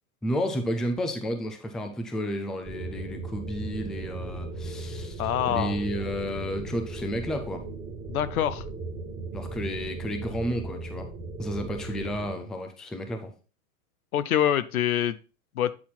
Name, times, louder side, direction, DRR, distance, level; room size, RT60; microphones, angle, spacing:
voice 1, 0.2-5.2 5.5-7.6 9.3-11.1 11.4-13.3, equal, ahead, 6 dB, 0.3 m, -32 dB
sound 1, 2.6-12.3, right 3 dB, 20° right, 1.7 m, -37 dB
voice 2, 5.2-5.8 8.1-8.6 14.1-15.2 15.6-15.7, left 10 dB, 85° left, 14 dB, 0.8 m, -25 dB
8.5 x 4.1 x 4.3 m, 0.34 s
hypercardioid pair, 120°, 42 cm